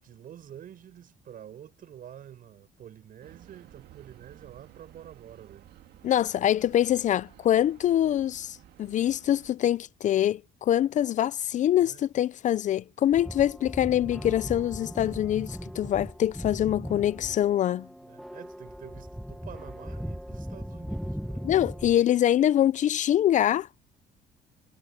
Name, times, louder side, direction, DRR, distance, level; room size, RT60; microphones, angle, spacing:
voice 1, 0.0-5.7 11.7-12.0 18.0-22.2, right 10 dB, 55° right, 6.1 m, -48 dB
sound 1, 3.2-9.5, right 13 dB, 75° right, 1.8 m, -53 dB
voice 2, 6.0-17.9 21.4-23.8, left 11 dB, 45° left, 0.4 m, -24 dB
sound 2, 13.1-22.0, equal, ahead, 0.6 m, -38 dB
cardioid pair, 110°, 17 cm